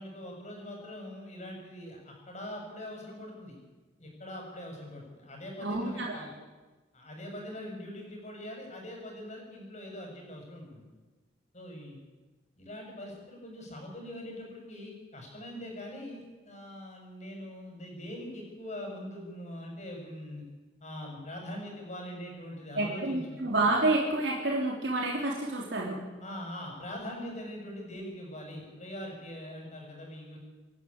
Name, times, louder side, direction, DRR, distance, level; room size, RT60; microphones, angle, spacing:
voice 1, 0.0-3.6 4.0-6.3 6.9-10.9 11.5-12.0 12.6-20.4 20.8-23.4 26.2-30.4, left 1 dB, 40° left, 1 dB, 6.7 m, -42 dB
voice 2, 5.6-6.2 22.7-26.0, right 2 dB, 65° right, -2 dB, 3.4 m, -29 dB
26.5 x 11.0 x 8.8 m, 1.3 s
head